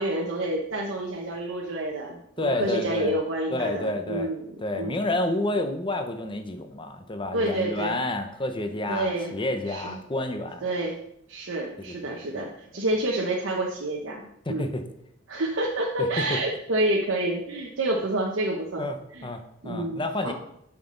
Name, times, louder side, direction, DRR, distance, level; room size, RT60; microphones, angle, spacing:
voice 1, 0.0-5.0 7.3-8.0 8.9-9.3 9.7-9.9 10.6-11.0 11.3-14.2 14.5-14.7 15.3-19.3 19.6-20.3, right 1 dB, 75° right, -2 dB, 1.0 m, -28 dB
voice 2, 2.4-3.1 3.5-4.3 4.6-10.6 11.9-12.0 12.4-12.5 14.5-14.8 16.2-16.4 18.8-19.0 19.2-20.3, left 2 dB, 25° left, 7 dB, 0.8 m, -29 dB
8.4 x 5.9 x 3.9 m, 0.74 s
head